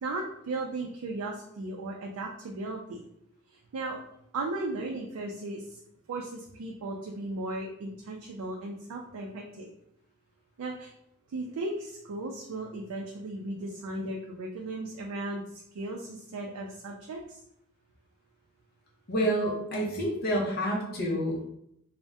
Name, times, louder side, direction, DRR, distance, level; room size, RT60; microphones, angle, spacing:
voice 1, 0.0-3.0 3.7-4.0 4.3-5.8 6.1-9.7 10.6-10.9 11.3-15.4 15.7-17.4, right 2 dB, 80° right, 0 dB, 0.4 m, -36 dB
voice 2, 19.1-21.4, equal, 45° left, -2 dB, 0.7 m, -28 dB
2.6 x 2.1 x 3.4 m, 0.75 s
head